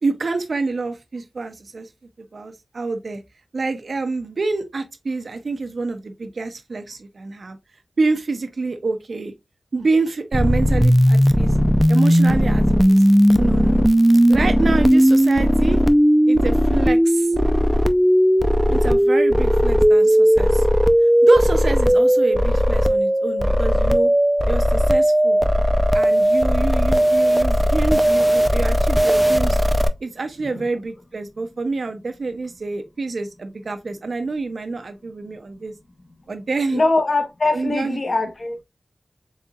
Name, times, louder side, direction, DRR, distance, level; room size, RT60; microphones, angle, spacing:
voice 1, 0.0-1.9 2.3-3.2 3.5-7.6 8.0-9.3 9.7-11.5 11.9-13.1 13.4-13.8 14.3-15.8 16.3-17.3 18.7-20.7 21.2-24.1 24.4-25.4 25.9-29.6 30.0-35.7 36.3-36.8 37.5-38.0, right 3 dB, 80° right, 0.5 m, -27 dB
sound 1, 10.3-29.9, equal, 10° right, 0.4 m, -16 dB
voice 2, 36.7-38.6, left 2 dB, 65° left, 0.9 m, -22 dB
4.1 x 3.6 x 2.3 m
wide cardioid pair, 55°, 0 cm